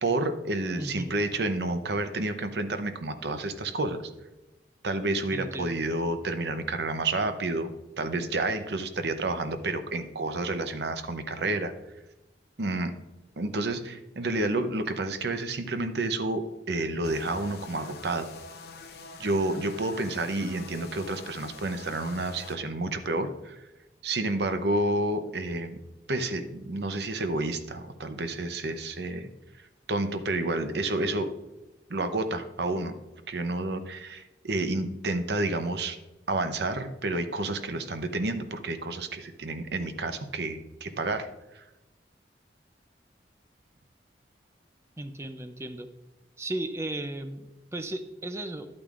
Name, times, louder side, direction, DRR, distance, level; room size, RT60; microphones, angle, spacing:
voice 1, 0.0-4.0 4.8-11.7 12.6-12.9 13.4-18.3 19.2-23.6 24.0-25.8 26.1-29.3 29.9-31.3 31.9-32.9 33.3-36.0 36.3-41.3 41.5-41.6, right 2 dB, 70° right, 9 dB, 0.7 m, -30 dB
voice 2, 0.8-1.2 5.3-5.8 45.0-45.9 46.4-48.7, right 1 dB, 15° right, 8 dB, 0.5 m, -35 dB
sound 1, 17.0-22.6, left 3 dB, 60° left, 0.7 m, -45 dB
11.0 x 8.6 x 2.5 m, 1.0 s
head